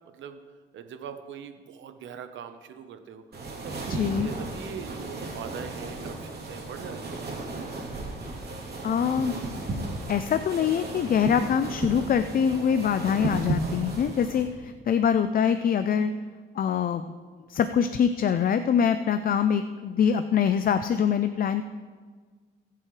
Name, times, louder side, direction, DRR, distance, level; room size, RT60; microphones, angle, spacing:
voice 1, 0.1-0.4 0.7-7.3, right 7 dB, 70° right, 8 dB, 1.1 m, -42 dB
sound 1, 3.3-14.5, right 2 dB, 50° right, 3.1 m, -34 dB
voice 2, 3.9-4.3 8.8-9.3 10.1-16.1 16.5-17.1 17.5-21.6, left 7 dB, 45° left, 10 dB, 0.5 m, -24 dB
20.0 x 7.6 x 3.3 m, 1.5 s
cardioid pair, 90°, 20 cm